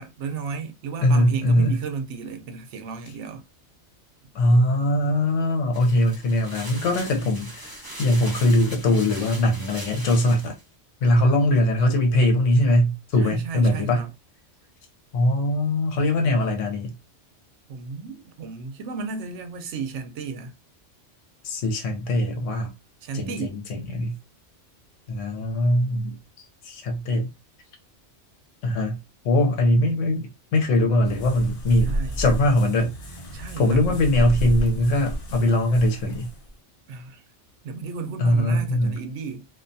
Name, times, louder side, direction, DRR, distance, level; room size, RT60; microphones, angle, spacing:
voice 1, 0.0-3.4 7.2-7.3 13.2-14.1 17.7-20.5 23.0-23.6 31.8-32.2 33.3-34.0 36.9-37.2 37.6-39.5, right 5 dB, 75° right, 0.9 m, -33 dB
voice 2, 1.0-1.8 4.3-10.5 11.0-14.1 15.1-16.9 21.4-22.7 23.1-24.2 25.1-27.3 28.6-29.0 29.2-32.9 33.6-36.3 38.2-39.0, left 1 dB, 85° left, 1.1 m, -21 dB
sound 1, 5.7-10.6, right 1 dB, 20° right, 0.7 m, -40 dB
sound 2, 31.0-36.5, right 1 dB, 55° left, 0.7 m, -31 dB
2.4 x 2.2 x 2.6 m
omnidirectional pair, 1.2 m